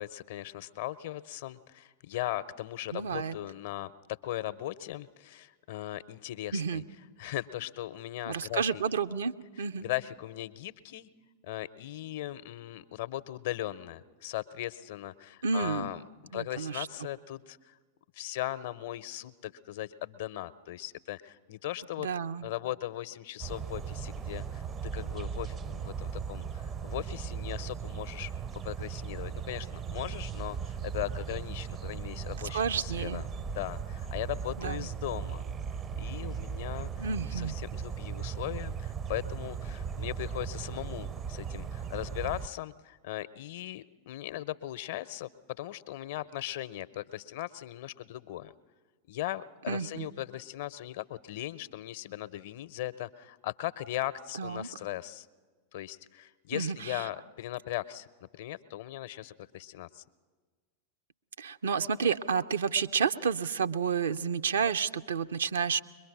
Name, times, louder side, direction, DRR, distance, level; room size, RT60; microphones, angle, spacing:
voice 1, 0.0-3.9 4.2-6.8 7.2-8.8 9.8-11.1 11.5-16.0 16.3-17.7 18.1-22.1 22.4-35.4 36.0-37.1 37.3-48.5 49.1-55.3 55.7-58.1 58.3-60.0, left 14 dB, 55° left, 15 dB, 0.6 m, -38 dB
voice 2, 2.9-3.4 6.5-6.8 8.3-9.9 15.4-15.9 16.3-16.9 22.0-22.5 32.5-33.2 34.6-34.9 37.0-37.5 49.7-50.1 54.4-54.7 56.5-57.0 61.4-65.8, right 6 dB, 65° right, 10 dB, 0.6 m, -30 dB
sound 1, 23.4-42.5, right 7 dB, 25° right, 0.5 m, -37 dB
22.0 x 22.0 x 6.1 m, 1.4 s
figure-of-eight pair, 90°, 0 cm